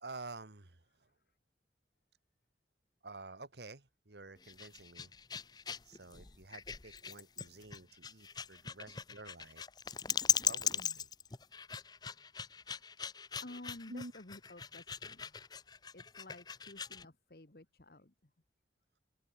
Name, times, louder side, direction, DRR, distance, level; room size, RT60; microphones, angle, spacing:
voice 1, 0.0-1.1 3.0-5.1 5.8-9.6 10.4-11.1 13.9-14.1, right 3 dB, 75° right, 1.7 m, -50 dB
sound 1, 4.4-17.1, left 7 dB, 25° left, 0.6 m, -39 dB
voice 2, 12.5-12.9 13.4-15.4 15.9-18.3, left 1 dB, 55° left, 1.5 m, -53 dB
open air
head